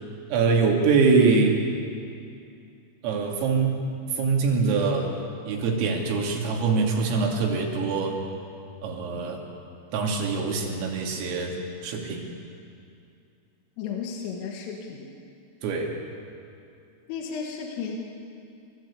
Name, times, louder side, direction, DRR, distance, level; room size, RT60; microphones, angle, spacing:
voice 1, 0.3-1.6 3.0-3.8 4.1-5.1 5.5-8.2 8.8-9.4 9.9-11.6 11.8-12.3 15.6-16.0, right 4 dB, 90° right, 0 dB, 5.1 m, -23 dB
voice 2, 13.8-15.2 17.1-18.0, left 6 dB, 80° left, 1 dB, 4.3 m, -34 dB
28.5 x 15.0 x 8.5 m, 2.5 s
omnidirectional pair, 5.8 m